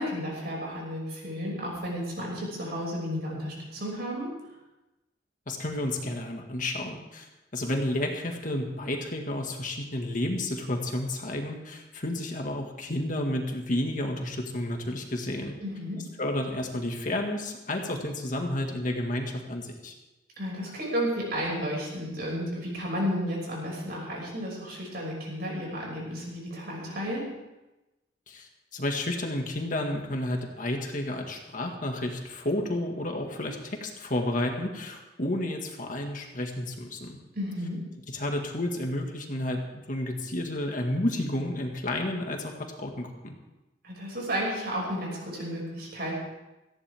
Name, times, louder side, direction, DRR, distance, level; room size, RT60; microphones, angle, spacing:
voice 1, 0.0-4.3 15.6-16.0 20.4-27.2 37.3-37.8 43.8-46.2, equal, 60° right, -3 dB, 6.1 m, -32 dB
voice 2, 5.5-15.5 16.2-19.9 28.3-37.2 38.1-43.3, left 1 dB, 45° left, 2 dB, 1.8 m, -31 dB
18.0 x 14.5 x 3.6 m, 1.0 s
head